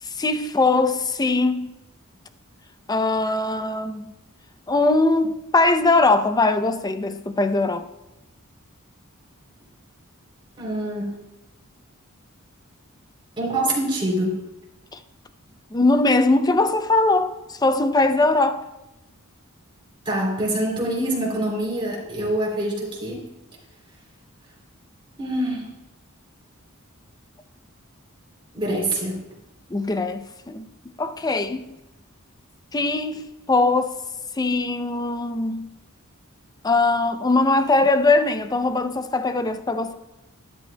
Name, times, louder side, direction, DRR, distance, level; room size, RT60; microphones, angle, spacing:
voice 1, 0.1-1.7 2.9-4.1 4.7-7.9 14.9-15.0 15.7-18.6 29.7-30.7 31.0-31.7 32.7-33.9 34.4-35.7 36.6-39.9, left 2 dB, 20° left, 0.5 m, -21 dB
voice 2, 10.6-11.1 13.4-14.4 20.0-23.2 25.2-25.7 28.5-29.2, right 1 dB, 25° right, 3.2 m, -25 dB
12.0 x 11.5 x 2.2 m
head